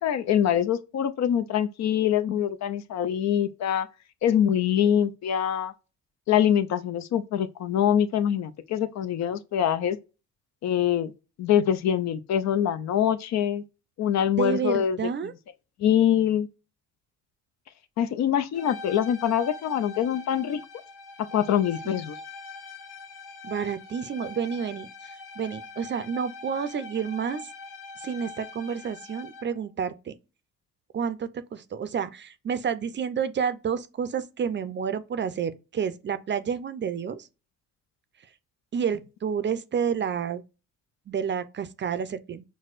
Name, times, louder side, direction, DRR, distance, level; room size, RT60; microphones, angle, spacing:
voice 1, 0.0-3.9 4.2-5.7 6.3-10.0 10.6-11.1 11.4-13.6 14.0-15.0 15.8-16.5 18.0-20.6 21.3-22.2, left 9 dB, 65° left, 0.5 m, -24 dB
voice 2, 14.4-15.3 21.8-22.0 23.4-27.5 28.0-30.1 30.9-37.3 38.7-40.4 41.1-42.4, right 7 dB, 40° right, 0.5 m, -30 dB
sound 1, 18.5-29.6, left 3 dB, 90° left, 1.7 m, -43 dB
6.0 x 2.2 x 2.4 m
cardioid pair, 90°, 30 cm